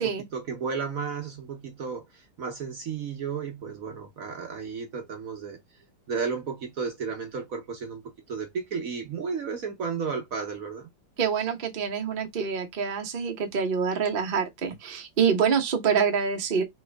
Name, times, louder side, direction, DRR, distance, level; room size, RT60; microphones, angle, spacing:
voice 1, 0.0-5.6 6.1-8.0 8.3-10.9, right 5 dB, 55° right, 1.1 m, -33 dB
voice 2, 11.2-16.6, right 6 dB, 40° right, 0.9 m, -26 dB
4.5 x 3.1 x 3.4 m
omnidirectional pair, 2.0 m